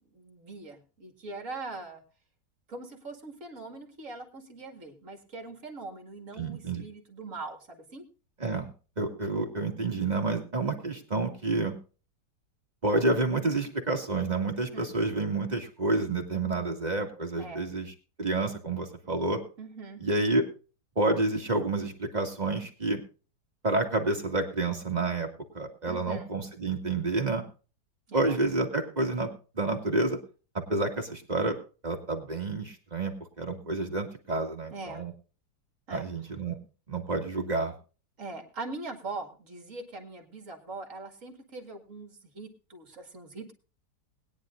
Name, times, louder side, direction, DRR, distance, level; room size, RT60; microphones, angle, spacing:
voice 1, 0.1-2.0 2.7-8.0 14.7-14.9 17.4-17.7 19.6-20.0 25.8-26.3 28.1-28.4 34.7-35.1 35.9-36.1 38.2-43.5, right 3 dB, 50° right, 4 dB, 2.5 m, -42 dB
voice 2, 6.4-6.8 8.4-8.7 9.0-11.7 12.8-17.9 18.2-19.4 20.0-20.4 21.0-23.0 23.6-25.3 25.5-27.4 28.1-29.3 29.5-30.2 30.7-31.6 31.8-35.1 35.9-36.6 36.9-37.7, right 2 dB, 25° right, 2 dB, 2.1 m, -29 dB
21.0 x 10.0 x 2.5 m, 0.35 s
omnidirectional pair, 1.8 m